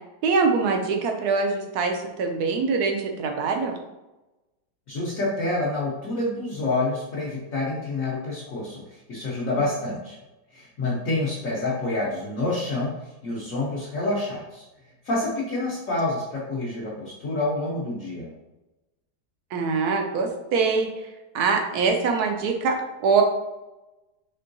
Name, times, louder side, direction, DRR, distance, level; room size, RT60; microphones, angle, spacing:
voice 1, 0.2-3.7 19.5-20.9 21.3-23.2, right 4 dB, 70° right, 4 dB, 1.1 m, -23 dB
voice 2, 4.9-10.2 10.5-12.9 13.2-14.6 15.0-18.3, left 2 dB, 55° left, -6 dB, 1.1 m, -28 dB
4.4 x 3.6 x 2.6 m, 1.0 s
omnidirectional pair, 1.8 m